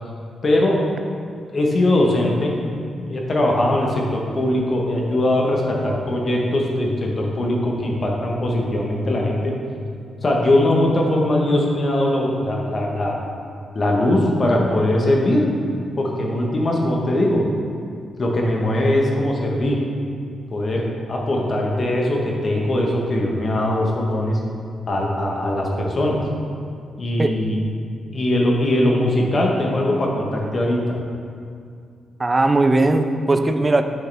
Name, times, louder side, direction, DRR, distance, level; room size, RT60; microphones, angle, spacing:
voice 1, 0.4-0.8 1.5-2.5 3.1-9.5 10.2-13.2 13.7-15.4 16.0-17.4 18.2-19.8 20.5-24.4 24.9-26.2 27.0-27.6 28.1-31.0, left 1 dB, 35° left, -1 dB, 1.2 m, -20 dB
voice 2, 32.2-33.8, right 2 dB, 20° right, 8 dB, 0.4 m, -18 dB
9.2 x 6.4 x 3.4 m, 2.3 s
cardioid pair, 135°, 0 cm